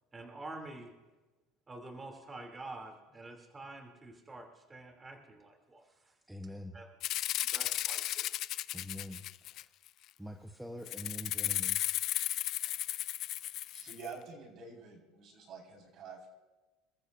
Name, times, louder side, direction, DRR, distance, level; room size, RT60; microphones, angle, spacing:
voice 1, 0.1-0.9 1.7-2.9 3.2-6.1 6.7-6.8 7.5-8.3, right 2 dB, 20° right, 2 dB, 3.0 m, -47 dB
voice 2, 6.3-6.8 8.7-9.7 10.2-11.8, equal, 5° right, 3 dB, 1.1 m, -45 dB
Rattle (instrument), 7.0-9.9 10.9-14.1, left 14 dB, 55° left, 0.4 m, -35 dB
voice 3, 13.4-16.3, right 4 dB, 50° right, 1 dB, 5.0 m, -48 dB
28.5 x 14.0 x 2.7 m, 1.2 s
supercardioid pair, 110°, 0 cm